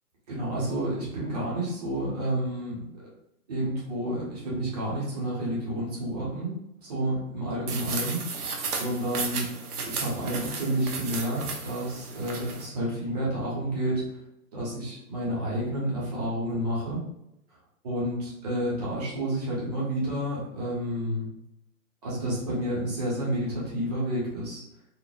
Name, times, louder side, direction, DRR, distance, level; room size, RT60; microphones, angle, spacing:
voice 1, 0.3-2.8 3.5-6.5 6.8-8.2 8.7-9.5 9.8-14.2 14.5-17.0 17.8-21.3 22.0-24.6, right 1 dB, 25° right, -6 dB, 1.1 m, -30 dB
sound 1, 7.7-12.7, right 5 dB, 70° right, 0.8 m, -34 dB
4.1 x 2.5 x 2.4 m, 0.84 s
hypercardioid pair, 165°, 46 cm